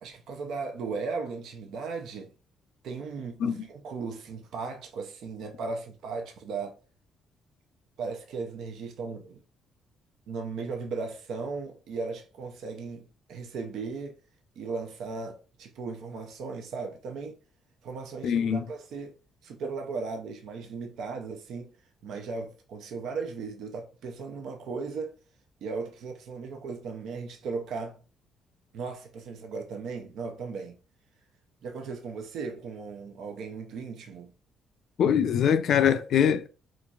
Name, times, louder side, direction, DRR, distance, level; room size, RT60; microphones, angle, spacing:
voice 1, 0.0-2.3 2.8-6.8 8.0-9.4 10.3-14.2 14.6-17.4 17.8-19.2 19.4-21.7 22.0-25.2 25.6-28.0 28.7-30.8 31.6-34.3, right 4 dB, 75° right, 0.6 m, -36 dB
voice 2, 18.2-18.6 35.0-36.5, left 8 dB, 70° left, 0.4 m, -23 dB
3.8 x 3.1 x 2.3 m
cardioid pair, 80°, 0 cm